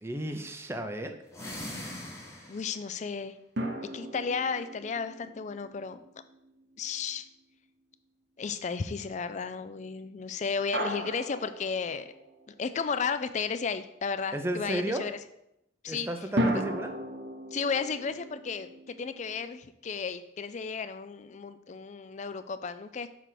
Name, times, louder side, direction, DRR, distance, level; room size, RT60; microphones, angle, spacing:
voice 1, 0.0-1.2 14.3-15.1 15.9-16.9, right 1 dB, 15° right, 5 dB, 0.6 m, -33 dB
sound 1, 1.2-2.9, left 1 dB, 15° left, 1.3 m, -41 dB
voice 2, 2.5-3.3 3.9-6.0 6.8-7.3 8.4-12.1 12.5-15.2 15.8-16.1 16.5-16.6 17.5-23.1, left 5 dB, 40° left, 11 dB, 0.4 m, -33 dB
sound 2, 3.6-6.9 10.7-12.7 16.4-19.5, right 1 dB, 60° right, 0.9 m, -36 dB
6.4 x 3.4 x 5.8 m, 0.81 s
head